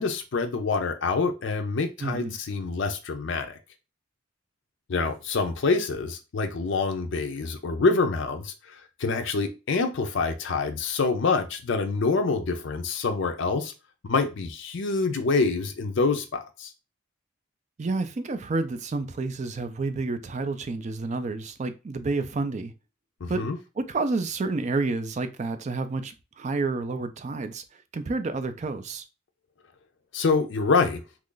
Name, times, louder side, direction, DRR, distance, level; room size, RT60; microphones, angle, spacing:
voice 1, 0.0-3.6 4.9-13.7 14.0-16.7 23.2-23.6 30.1-31.0, left 4 dB, 55° left, 0.4 m, -26 dB
voice 2, 2.0-2.4 17.8-22.7 23.3-23.5 23.8-27.6 27.9-29.0, right 3 dB, 35° right, 0.3 m, -29 dB
3.0 x 2.4 x 3.8 m
head